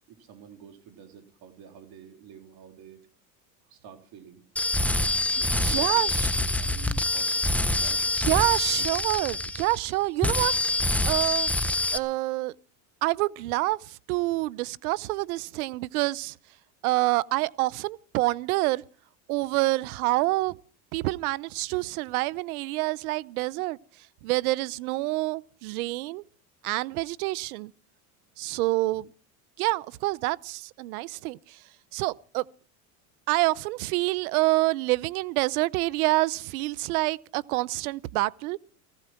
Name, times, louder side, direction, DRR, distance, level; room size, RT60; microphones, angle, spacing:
voice 1, 0.1-3.0 3.7-4.4 5.3-8.1, right 8 dB, 60° right, 3.7 m, -49 dB
sound 1, 4.6-9.9 10.2-12.0, left 2 dB, 5° left, 0.8 m, -26 dB
voice 2, 5.6-6.3 8.2-10.5 11.1-11.5 11.9-12.5 13.0-16.3 16.8-18.8 19.3-20.6 20.9-23.8 24.2-26.2 26.6-27.7 28.4-29.1 29.6-31.6 31.9-32.4 33.3-38.6, right 20 dB, 80° right, 0.7 m, -27 dB
18.5 x 15.0 x 4.5 m
supercardioid pair, 100°, 43 cm